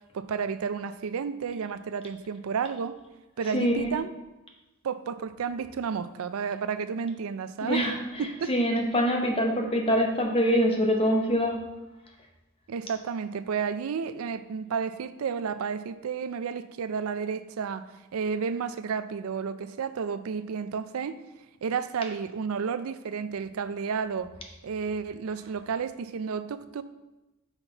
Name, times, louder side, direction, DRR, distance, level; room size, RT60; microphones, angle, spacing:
voice 1, 0.1-3.0 3.4-4.1 4.8-7.8 8.2-8.5 12.7-17.8 18.1-21.2 21.6-24.3 24.6-26.8, right 6 dB, 85° right, 12 dB, 0.4 m, -31 dB
voice 2, 3.5-3.9 7.6-7.9 8.5-11.6, equal, 25° left, 2 dB, 0.9 m, -24 dB
5.9 x 5.7 x 4.0 m, 1.0 s
head